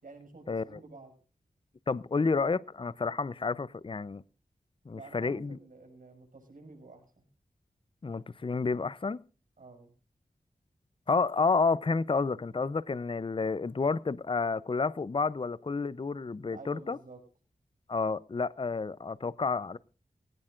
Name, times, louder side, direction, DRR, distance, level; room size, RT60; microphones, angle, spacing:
voice 1, 0.0-1.1 4.9-7.2 9.6-9.9 16.4-17.2, right 3 dB, 70° right, 6.2 m, -50 dB
voice 2, 1.9-4.2 4.9-5.6 8.0-9.2 11.1-17.0 17.9-19.8, left 4 dB, 35° left, 0.6 m, -30 dB
19.0 x 17.5 x 2.5 m
wide cardioid pair, 65°, 14 cm